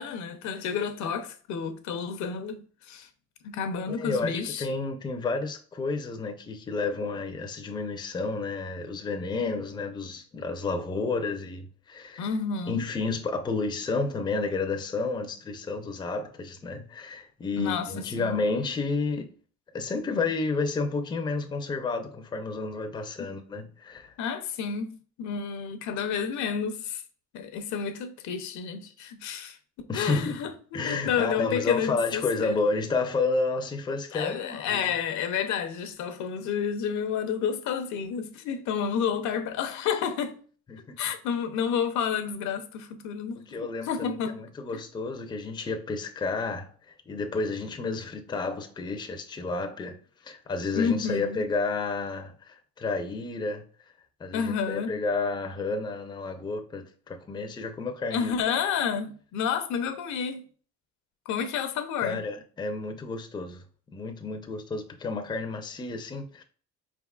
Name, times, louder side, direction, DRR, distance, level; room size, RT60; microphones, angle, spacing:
voice 1, 0.0-3.1 3.4-4.6 12.2-12.8 17.6-18.4 24.2-27.0 27.3-32.6 34.1-40.3 41.0-44.4 44.7-44.8 50.7-51.4 54.3-54.9 58.1-60.4 61.3-62.2, left 7 dB, 75° left, 0.7 m, -30 dB
voice 2, 3.9-12.3 12.7-19.3 19.7-24.1 29.9-30.4 30.7-34.9 40.7-41.0 43.5-50.0 50.2-53.6 54.2-58.3 62.0-66.4, left 3 dB, 15° left, 0.4 m, -31 dB
4.7 x 3.5 x 2.3 m
cardioid pair, 140°, 29 cm